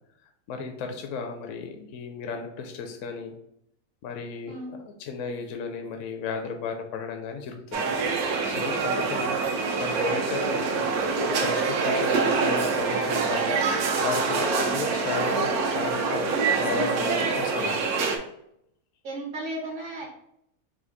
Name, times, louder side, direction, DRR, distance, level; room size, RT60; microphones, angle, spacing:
voice 1, 0.5-3.3 4.0-7.8 8.5-9.4 9.8-10.8 11.4-13.6 14.0-17.9, left 5 dB, 70° left, 4 dB, 0.8 m, -34 dB
sound 1, 7.7-18.2, right 4 dB, 80° right, 1.1 m, -25 dB
voice 2, 19.0-20.1, right 1 dB, 50° right, -1 dB, 0.7 m, -36 dB
4.2 x 2.5 x 3.8 m, 0.75 s
omnidirectional pair, 1.6 m